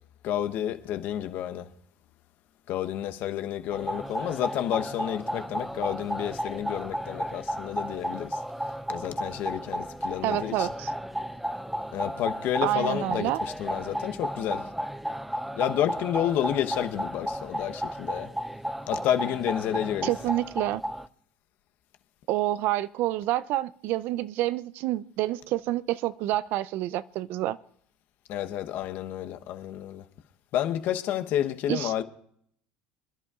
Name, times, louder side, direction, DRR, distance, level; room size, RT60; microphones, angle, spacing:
voice 1, 0.2-1.7 2.7-8.4 8.9-10.7 11.9-14.7 15.5-18.3 18.9-20.2 28.3-30.0 30.5-32.0, left 11 dB, 60° left, 1.0 m, -30 dB
sound 1, 3.7-21.1, equal, 5° right, 0.5 m, -33 dB
voice 2, 10.2-10.9 12.6-13.4 20.0-20.8 22.3-27.6 31.7-32.0, right 15 dB, 65° right, 0.5 m, -28 dB
26.5 x 11.0 x 2.5 m
supercardioid pair, 105°, 4 cm